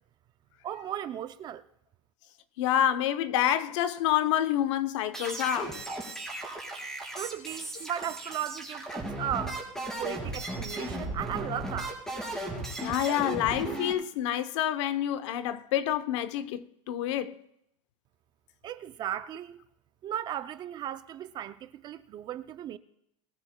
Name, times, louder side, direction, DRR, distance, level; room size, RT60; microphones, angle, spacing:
voice 1, 0.6-1.6 7.1-9.6 10.0-12.0 18.6-19.6 20.0-22.8, right 11 dB, 25° right, 0.4 m, -36 dB
voice 2, 2.6-5.8 12.8-17.4, left 11 dB, 60° left, 0.9 m, -28 dB
sound 1, 5.1-13.9, right 1 dB, 5° left, 4.0 m, -36 dB
22.0 x 13.0 x 2.3 m
supercardioid pair, 150°, 17 cm